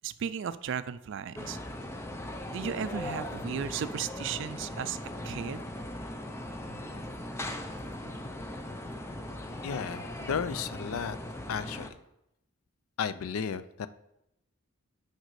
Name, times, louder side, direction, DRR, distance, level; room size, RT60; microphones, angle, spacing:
voice 1, 0.0-1.6 2.5-5.0 5.2-5.6, right 7 dB, 60° right, 14 dB, 0.4 m, -35 dB
sound 1, 1.4-11.9, left 1 dB, 10° left, 0.5 m, -39 dB
voice 2, 9.6-11.2 11.5-11.9 13.0-13.9, left 6 dB, 80° left, 14 dB, 0.4 m, -33 dB
6.5 x 5.1 x 4.7 m, 0.81 s
head